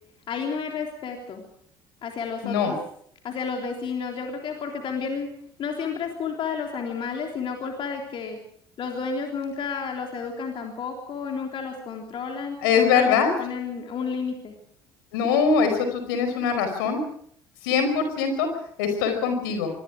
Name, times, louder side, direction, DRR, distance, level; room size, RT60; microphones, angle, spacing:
voice 1, 0.3-1.4 2.0-2.8 3.2-5.3 5.6-8.4 8.8-14.5, left 5 dB, 45° left, 2 dB, 3.5 m, -31 dB
voice 2, 2.4-2.8 12.6-13.3 15.1-17.0 17.6-18.5 18.8-19.7, left 6 dB, 65° left, 7 dB, 5.0 m, -22 dB
25.0 x 24.0 x 5.0 m, 0.65 s
figure-of-eight pair, 55°, 12 cm